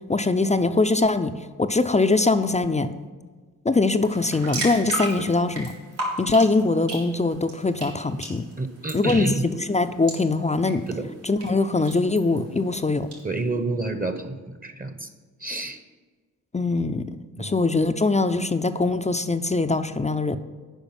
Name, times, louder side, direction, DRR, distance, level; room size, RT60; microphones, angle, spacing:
voice 1, 0.1-2.9 3.6-5.7 6.2-8.5 8.9-10.9 11.2-13.1 16.5-17.1 17.4-20.4, left 3 dB, 15° left, 10 dB, 0.5 m, -22 dB
sound 1, 4.0-13.2, right 2 dB, 75° right, 2.8 m, -37 dB
voice 2, 8.6-9.5 10.9-11.1 13.2-15.1 15.4-15.8 17.4-17.5, right 2 dB, 20° right, 9 dB, 0.9 m, -29 dB
9.0 x 5.3 x 5.8 m, 1.4 s
supercardioid pair, 40°, 40 cm